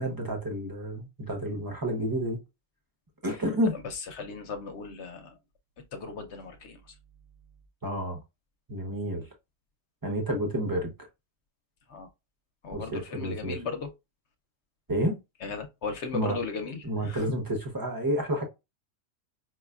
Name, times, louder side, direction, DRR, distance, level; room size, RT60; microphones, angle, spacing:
voice 1, 0.0-2.4 3.2-3.7 7.8-8.2 8.7-9.3 10.0-10.9 12.7-13.6 14.9-15.2 16.1-16.4 16.8-18.4, right 1 dB, 20° right, 0.8 m, -30 dB
voice 2, 4.2-5.3 5.9-6.9 11.9-12.1 12.6-13.9 15.4-17.2, left 4 dB, 65° left, 0.9 m, -36 dB
4.8 x 2.3 x 2.3 m
omnidirectional pair, 1.3 m